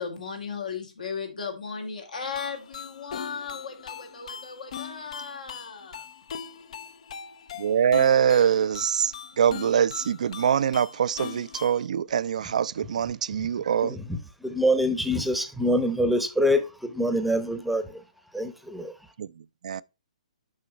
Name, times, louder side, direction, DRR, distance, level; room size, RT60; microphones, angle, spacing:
voice 1, 0.0-6.1, left 5 dB, 80° left, 2.4 m, -36 dB
sound 1, 2.2-11.9, left 7 dB, 60° left, 0.6 m, -41 dB
voice 2, 7.6-14.0 19.2-19.8, right 8 dB, 65° right, 0.4 m, -24 dB
voice 3, 14.4-18.0 18.3-19.1, equal, ahead, 0.8 m, -25 dB
6.4 x 5.6 x 4.4 m
hypercardioid pair, 135°, 4 cm